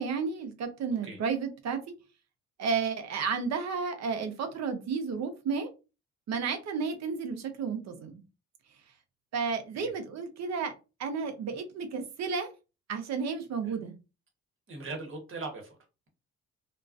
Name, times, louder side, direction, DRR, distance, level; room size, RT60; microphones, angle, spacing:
voice 1, 0.0-1.8 2.6-5.7 6.3-8.2 9.3-10.7 11.0-12.5 12.9-13.9, right 5 dB, 60° right, 0.6 m, -32 dB
voice 2, 14.7-15.8, right 3 dB, 45° right, 1.1 m, -40 dB
2.3 x 2.2 x 2.4 m
cardioid pair, 90°, 30 cm